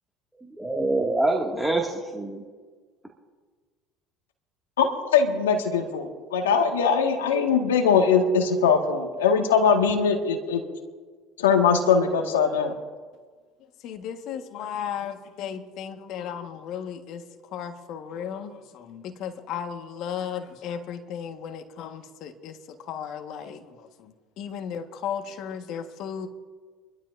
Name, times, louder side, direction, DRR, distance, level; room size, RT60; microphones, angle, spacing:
voice 1, 0.4-2.4, right 2 dB, 5° right, -1 dB, 2.2 m, -25 dB
voice 2, 4.8-10.6 11.4-12.7, left 6 dB, 85° left, 4 dB, 1.8 m, -21 dB
voice 3, 13.8-26.3, left 8 dB, 60° left, 6 dB, 1.5 m, -35 dB
27.5 x 12.5 x 2.7 m, 1.5 s
hypercardioid pair, 70°, 0 cm